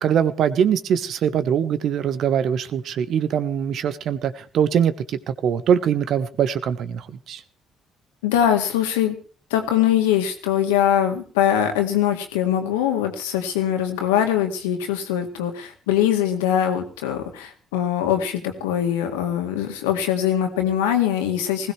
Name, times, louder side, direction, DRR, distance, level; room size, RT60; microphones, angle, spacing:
voice 1, 0.0-7.4, right 8 dB, 60° right, 12 dB, 1.2 m, -22 dB
voice 2, 8.2-9.2 9.5-21.7, left 10 dB, 80° left, 5 dB, 2.1 m, -22 dB
20.0 x 16.5 x 3.3 m, 0.39 s
hypercardioid pair, 50°, 0 cm